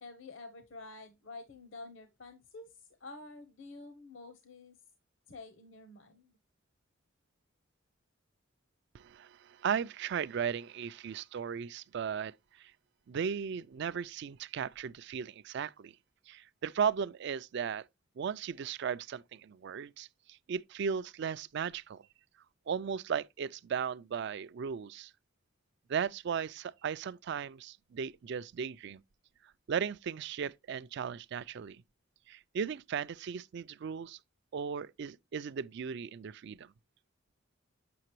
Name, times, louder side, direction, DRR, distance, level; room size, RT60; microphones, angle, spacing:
voice 1, 0.0-4.8 5.3-6.3, left 3 dB, 70° left, 0.9 m, -49 dB
voice 2, 8.9-12.7 13.1-15.9 16.3-17.9 18.2-22.0 22.7-25.1 25.9-29.0 29.7-31.8 32.3-34.2 34.5-36.7, right 7 dB, 60° right, 0.3 m, -36 dB
7.7 x 5.8 x 3.0 m
head